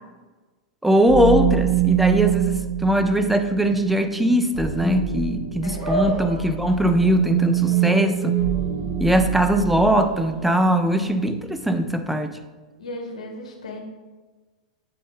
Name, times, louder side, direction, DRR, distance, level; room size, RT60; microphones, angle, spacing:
voice 1, 0.8-8.4 9.0-12.4, equal, 5° right, 8 dB, 0.5 m, -20 dB
sound 1, 1.1-10.2, right 12 dB, 50° right, 1.3 m, -25 dB
voice 2, 5.6-6.1 12.8-13.8, left 2 dB, 75° left, 0 dB, 1.5 m, -35 dB
sound 2, 5.8-12.2, right 1 dB, 35° right, 1.7 m, -34 dB
8.6 x 4.0 x 3.5 m, 1.3 s
figure-of-eight pair, 100°, 4 cm